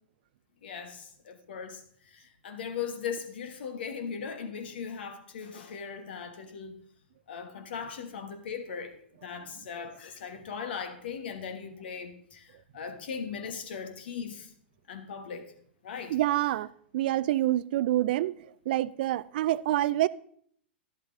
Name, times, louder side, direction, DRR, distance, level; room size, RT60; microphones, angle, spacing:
voice 1, 0.6-6.8 7.3-9.0 9.2-14.5 14.9-15.5 15.8-16.2, left 6 dB, 65° left, 1.4 m, -39 dB
voice 2, 16.1-18.4 18.7-20.1, right 14 dB, 55° right, 0.3 m, -27 dB
11.5 x 11.5 x 2.7 m
hypercardioid pair, 105°, 6 cm